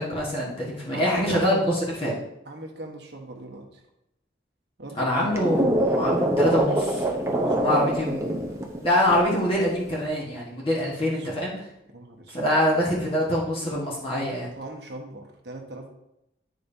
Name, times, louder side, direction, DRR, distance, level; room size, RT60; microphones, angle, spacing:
voice 1, 0.0-2.1 5.0-7.0 7.5-8.4 8.8-11.5 12.3-14.5, left 1 dB, 30° left, -5 dB, 1.4 m, -24 dB
voice 2, 0.9-1.7 2.5-3.8 4.8-5.3 7.1-8.6 10.8-11.3 11.9-12.4 14.6-15.9, right 1 dB, 70° right, 2 dB, 1.1 m, -40 dB
sound 1, 5.1-9.3 9.7-10.0, right 1 dB, 15° right, 0.8 m, -25 dB
9.2 x 5.3 x 2.7 m, 0.86 s
head